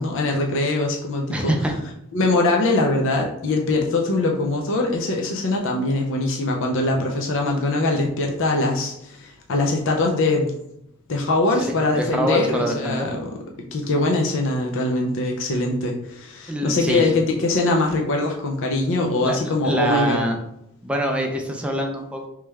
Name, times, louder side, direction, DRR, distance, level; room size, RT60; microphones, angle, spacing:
voice 1, 0.0-1.5 2.1-10.5 11.1-13.3 13.7-20.2, left 2 dB, 60° left, 1 dB, 0.5 m, -22 dB
voice 2, 1.3-1.7 11.6-13.1 16.5-17.1 19.2-19.4 19.6-20.4 20.8-22.3, right 1 dB, 5° right, 1 dB, 0.5 m, -25 dB
3.2 x 3.2 x 3.4 m, 0.78 s
head